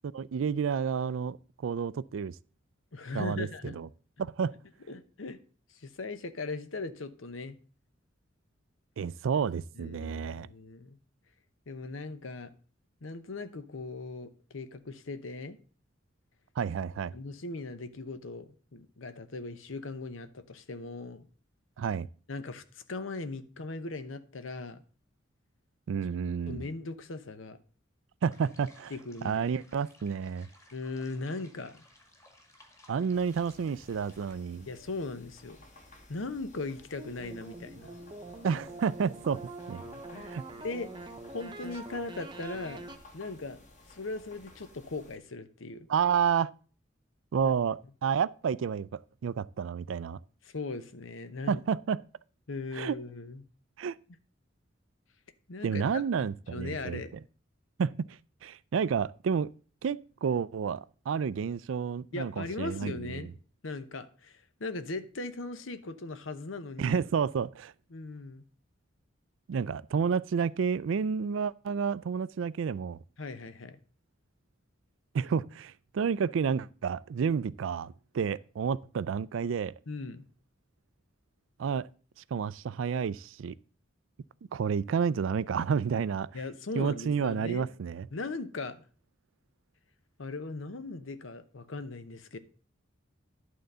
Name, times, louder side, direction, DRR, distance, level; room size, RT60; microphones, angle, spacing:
voice 1, 0.0-1.4 1.6-2.3 3.1-3.9 4.2-4.5 9.0-10.5 16.6-17.1 21.8-22.1 25.9-26.6 28.2-28.9 29.2-30.5 32.9-34.7 38.4-39.4 39.7-39.8 40.3-40.4 45.9-46.5 47.3-50.2 51.5-52.0 52.7-52.9 53.8-54.0 55.6-57.0 57.8-59.5 59.8-63.1 66.8-67.7 69.5-73.0 75.1-79.7 81.6-81.9 82.3-83.5 84.5-86.3 86.8-88.1, right 6 dB, 75° right, 0.4 m, -30 dB
voice 2, 2.9-3.8 4.9-5.4 5.7-7.6 9.8-11.0 11.7-12.5 13.0-15.6 17.1-21.3 22.3-24.8 26.5-27.6 28.9-29.5 30.7-31.8 34.7-35.6 36.1-37.9 39.8-40.9 41.3-42.8 43.1-43.6 43.9-45.9 47.4-47.5 50.4-51.6 52.5-53.5 55.5-57.2 62.1-63.3 63.6-67.0 67.9-68.4 73.2-73.8 79.9-80.3 86.3-87.7 88.1-88.8 90.2-92.4, left 3 dB, 80° left, 0.9 m, -39 dB
sound 1, 28.3-34.4, left 1 dB, 15° left, 1.8 m, -59 dB
sound 2, 33.1-45.2, left 1 dB, 40° left, 2.0 m, -56 dB
sound 3, 37.0-43.0, right 2 dB, 25° right, 0.8 m, -44 dB
11.5 x 3.9 x 6.7 m
head